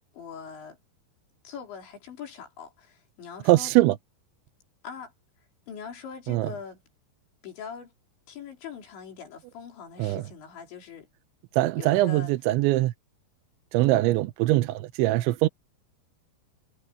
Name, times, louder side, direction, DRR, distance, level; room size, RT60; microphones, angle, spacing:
voice 1, 0.1-0.8 1.4-3.7 4.8-5.1 5.7-6.8 7.4-7.9 8.3-11.1 11.8-12.3, left 7 dB, 75° left, 5.9 m, -42 dB
voice 2, 3.5-4.0 6.3-6.5 10.0-10.2 11.5-12.9 13.7-15.5, right 17 dB, 90° right, 3.1 m, -22 dB
omnidirectional pair, 5.3 m